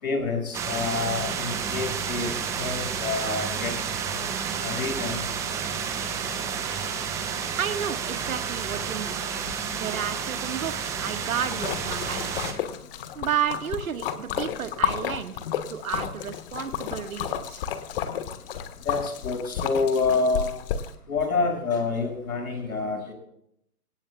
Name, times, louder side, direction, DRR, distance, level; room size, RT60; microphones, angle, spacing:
voice 1, 0.0-3.7 4.6-5.2 6.8-6.9 18.8-20.5 21.1-23.1, left 4 dB, 65° left, 3 dB, 6.0 m, -27 dB
sound 1, 0.5-12.5, right 6 dB, 5° right, 0.6 m, -30 dB
voice 2, 7.6-9.2 9.7-12.5 13.1-15.4 15.7-17.6, right 8 dB, 60° right, 10 dB, 1.5 m, -32 dB
Splash splatter, 11.4-20.9, left 9 dB, 35° left, 1.4 m, -32 dB
26.0 x 18.0 x 2.3 m, 0.74 s
figure-of-eight pair, 135°, 46 cm